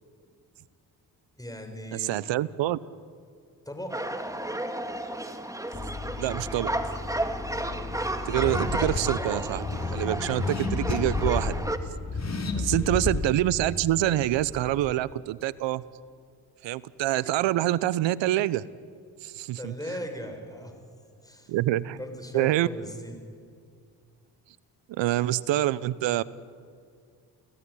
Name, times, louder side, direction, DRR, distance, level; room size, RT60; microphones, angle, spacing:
voice 1, 1.4-2.2 3.7-4.0 12.5-12.9 19.6-20.8 21.2-21.5 22.0-23.2, equal, 10° left, 5 dB, 6.8 m, -38 dB
voice 2, 1.9-2.8 6.2-6.7 8.2-11.5 12.5-15.8 16.6-18.7 19.2-19.7 21.5-22.0 22.3-22.7 24.9-26.2, right 14 dB, 80° right, 19 dB, 0.9 m, -26 dB
sound 1, 3.9-11.8, right 1 dB, 5° right, 2.3 m, -33 dB
Car / Accelerating revving vroom, 5.7-14.9, left 3 dB, 35° left, 4.0 m, -32 dB
29.5 x 17.0 x 10.0 m, 2.1 s
supercardioid pair, 50°, 44 cm